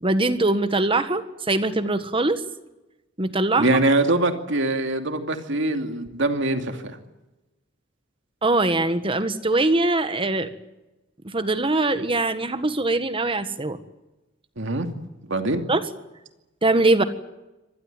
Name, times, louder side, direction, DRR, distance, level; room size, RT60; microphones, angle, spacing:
voice 1, 0.0-2.4 3.2-3.7 8.4-10.5 11.2-13.8 15.7-15.8 16.6-17.0, right 2 dB, 25° right, 11 dB, 1.6 m, -22 dB
voice 2, 3.6-7.0 14.6-14.9 15.3-15.6, right 2 dB, 65° right, 6 dB, 2.6 m, -23 dB
25.0 x 19.0 x 9.2 m, 1.0 s
head